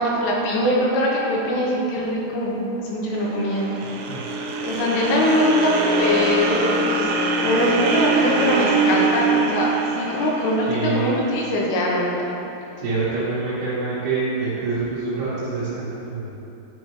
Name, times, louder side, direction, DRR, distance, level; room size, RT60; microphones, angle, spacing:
voice 1, 0.0-3.7 4.6-5.7 6.0-9.7 10.0-12.3, left 1 dB, 85° left, -3 dB, 3.0 m, -22 dB
sound 1, 3.1-11.4, right 3 dB, 90° right, 1.9 m, -23 dB
voice 2, 10.6-11.1 12.8-16.4, right 3 dB, 75° right, -12 dB, 3.2 m, -26 dB
10.0 x 5.4 x 3.1 m, 2.8 s
omnidirectional pair, 4.8 m